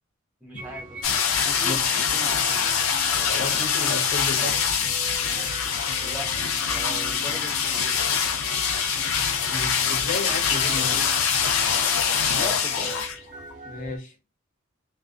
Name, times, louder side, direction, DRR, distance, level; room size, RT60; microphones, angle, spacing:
voice 1, 0.4-1.1 1.4-2.6 6.0-6.3 6.6-8.0 12.2-12.9, right 1 dB, 10° right, 0.6 m, -39 dB
sound 1, 0.6-14.0, right 2 dB, 45° right, 0.6 m, -42 dB
sound 2, 1.0-13.2 13.5-13.6, left 7 dB, 80° left, 0.4 m, -24 dB
voice 2, 3.3-4.7 9.5-11.1 12.1-13.0 13.7-14.2, left 3 dB, 40° left, 0.7 m, -33 dB
2.4 x 2.2 x 2.4 m
head